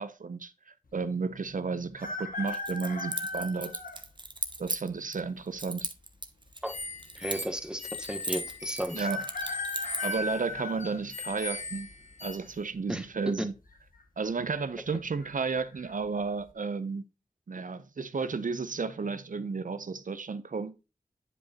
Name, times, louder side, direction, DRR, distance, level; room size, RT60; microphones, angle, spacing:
voice 1, 0.0-3.8 4.6-5.9 8.9-9.2 10.0-11.9 12.2-13.5 14.2-17.1 17.5-20.9, right 4 dB, 70° right, 0.6 m, -33 dB
sound 1, 2.0-4.0 4.7-4.8 5.9-6.5 6.8-6.9 7.1-7.2 9.0-11.6 12.1-12.5 13.6-14.0 14.3-14.4 14.9-15.3 15.7-15.9, left 2 dB, 80° left, 1.1 m, -37 dB
Keys jangling, 2.5-5.2 5.6-7.7 7.9-10.2, right 2 dB, 35° right, 0.9 m, -37 dB
sound 2, 6.6-12.6, left 3 dB, 50° left, 1.0 m, -41 dB
voice 2, 7.2-9.1 12.9-13.0, equal, 5° right, 1.1 m, -34 dB
9.6 x 5.1 x 2.8 m
cardioid pair, 40°, 14 cm